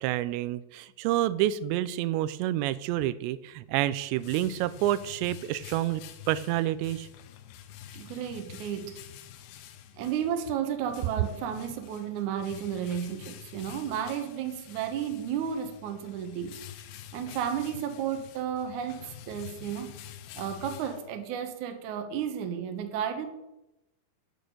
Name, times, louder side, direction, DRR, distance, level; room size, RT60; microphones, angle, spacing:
voice 1, 0.0-6.0 6.3-7.1, right 13 dB, 85° right, 14 dB, 2.8 m, -28 dB
sound 1, 3.6-21.5, left 10 dB, 80° left, 2.6 m, -48 dB
voice 2, 7.9-8.9 10.0-16.5 17.1-19.9 20.4-23.3, right 8 dB, 65° right, 6 dB, 2.0 m, -33 dB
8.9 x 8.3 x 6.4 m, 0.92 s
omnidirectional pair, 5.0 m